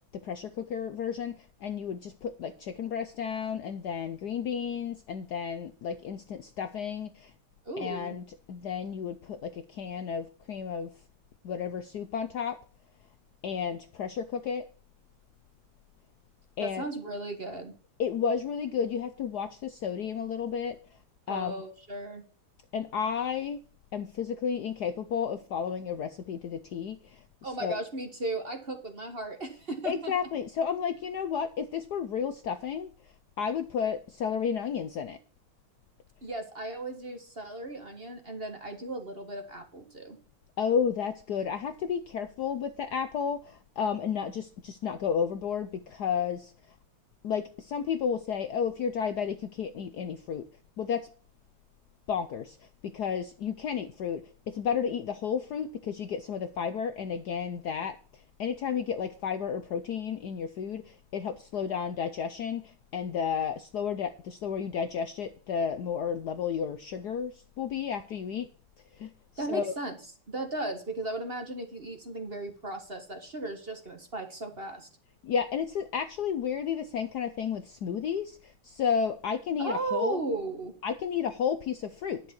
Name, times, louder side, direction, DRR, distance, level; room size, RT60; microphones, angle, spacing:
voice 1, 0.1-7.3 7.8-10.9 11.4-12.6 13.4-14.7 16.6-16.8 18.0-21.0 21.3-21.6 22.7-23.6 23.9-27.2 27.6-27.8 29.8-35.2 40.6-46.7 47.2-50.4 50.8-51.1 52.1-52.7 52.9-68.5 68.9-69.7 75.2-80.2 80.8-82.2, left 7 dB, 65° left, 10 dB, 1.1 m, -32 dB
voice 2, 7.6-8.2 16.6-17.7 21.3-22.2 27.4-30.3 36.2-40.2 69.4-70.0 70.3-74.9 79.6-80.7, right 2 dB, 30° right, 6 dB, 1.5 m, -36 dB
11.0 x 6.6 x 5.9 m, 0.41 s
omnidirectional pair, 2.3 m